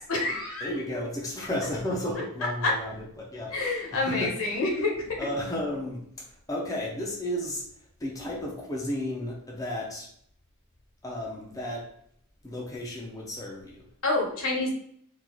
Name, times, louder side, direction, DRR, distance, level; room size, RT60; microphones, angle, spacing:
voice 1, 0.1-0.7 2.6-2.7 3.5-4.9 14.0-14.7, left 2 dB, 65° left, -1 dB, 1.0 m, -27 dB
voice 2, 0.6-4.6 5.2-7.6 8.0-10.1 11.0-11.9 12.4-13.8, left 1 dB, 15° left, -4 dB, 0.5 m, -33 dB
3.8 x 2.3 x 3.0 m, 0.67 s
head